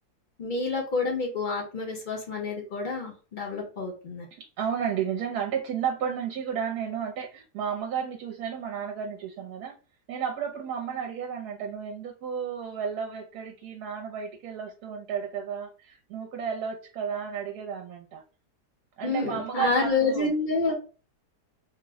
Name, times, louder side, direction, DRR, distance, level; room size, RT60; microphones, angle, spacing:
voice 1, 0.4-4.3 19.0-20.7, left 3 dB, 50° left, 0 dB, 0.6 m, -28 dB
voice 2, 4.3-9.7 10.1-18.2 19.0-20.3, right 7 dB, 75° right, 1 dB, 1.1 m, -32 dB
2.9 x 2.0 x 3.5 m, 0.35 s
omnidirectional pair, 1.7 m